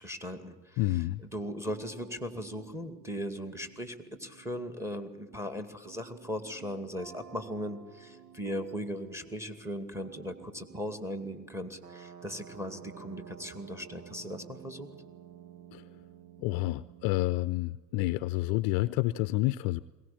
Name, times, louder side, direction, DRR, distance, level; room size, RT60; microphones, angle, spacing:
voice 1, 0.0-14.9, equal, 5° right, 9 dB, 2.3 m, -38 dB
voice 2, 0.8-1.2 15.7-15.8 16.4-19.8, left 18 dB, 45° left, 16 dB, 0.7 m, -29 dB
sound 1, 1.7-17.5, right 8 dB, 80° right, 1.6 m, -52 dB
22.0 x 18.0 x 8.6 m, 1.2 s
hypercardioid pair, 90°, 50 cm